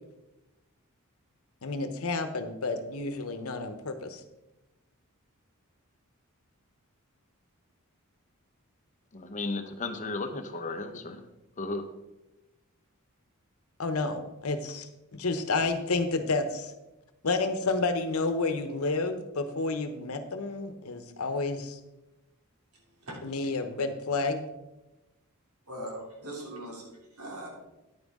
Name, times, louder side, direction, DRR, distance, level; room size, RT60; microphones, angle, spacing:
voice 1, 1.6-4.2 13.8-16.7 17.2-21.8 23.2-24.5, left 3 dB, 75° left, 0.9 m, -30 dB
voice 2, 9.1-11.2 11.6-11.9, left 3 dB, 35° left, 0.8 m, -34 dB
voice 3, 25.6-27.5, right 1 dB, 85° right, 2.9 m, -40 dB
9.8 x 9.3 x 3.7 m
head